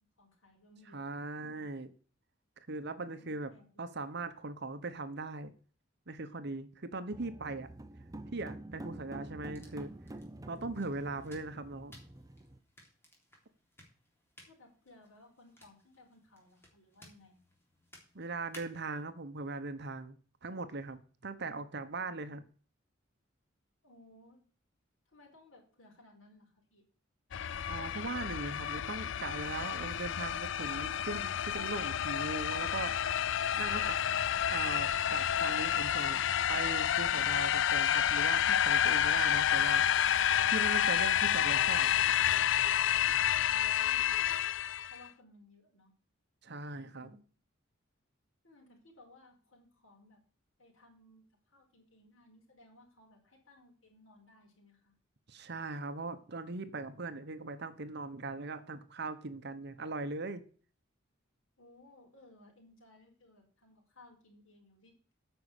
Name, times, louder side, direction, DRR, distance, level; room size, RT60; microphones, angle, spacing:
voice 1, 0.2-1.0 1.3-1.7 3.2-3.9 14.4-17.4 23.8-24.4 25.1-26.8 43.4-44.1 44.9-45.9 46.7-47.2 48.4-50.2 50.6-54.9 61.6-64.9, left 2 dB, 80° left, 5.0 m, -60 dB
voice 2, 0.9-1.9 2.7-3.5 3.8-5.5 6.1-7.7 8.3-9.9 10.5-12.0 18.1-20.2 20.4-22.4 27.7-32.9 33.6-34.0 34.5-36.2 36.5-41.9 46.4-47.1 55.3-60.4, right 3 dB, 55° right, 1.0 m, -40 dB
sound 1, 7.1-12.6, right 1 dB, 20° right, 0.7 m, -47 dB
sound 2, 9.4-19.0, left 1 dB, 10° left, 3.4 m, -60 dB
sound 3, 27.3-45.0, left 10 dB, 65° left, 0.4 m, -29 dB
9.4 x 6.3 x 8.2 m
head